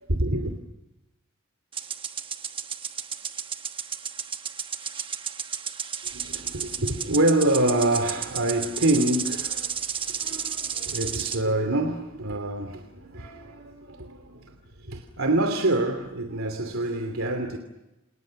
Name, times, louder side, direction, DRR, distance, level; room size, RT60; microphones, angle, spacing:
voice 1, 0.1-0.5 6.0-17.6, right 1 dB, 75° right, 6 dB, 2.9 m, -26 dB
sound 1, 1.7-11.4, right 7 dB, 25° right, 1.2 m, -33 dB
30.0 x 28.0 x 6.5 m, 0.97 s
head